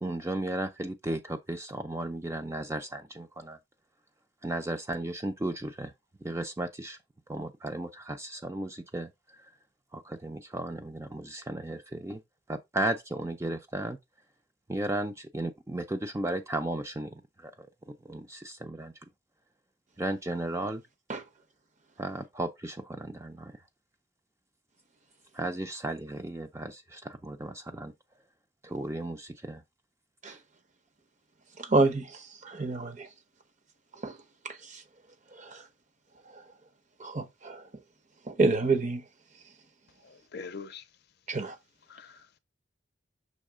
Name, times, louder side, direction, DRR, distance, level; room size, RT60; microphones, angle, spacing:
voice 1, 0.0-3.6 4.4-5.9 6.2-7.0 7.3-9.1 9.9-12.2 12.5-14.0 14.7-17.7 18.0-18.9 20.0-20.8 22.0-23.5 25.3-27.9 28.6-29.6 30.3-30.4, right 1 dB, 15° right, 0.5 m, -35 dB
voice 2, 31.6-33.1 34.0-34.2 34.4-34.8 35.3-35.6 36.3-36.4 37.0-37.6 38.3-39.0 41.3-41.5, right 3 dB, 40° right, 0.9 m, -28 dB
voice 3, 40.0-40.8 41.9-42.4, left 5 dB, 60° left, 0.6 m, -43 dB
6.3 x 3.1 x 4.9 m
head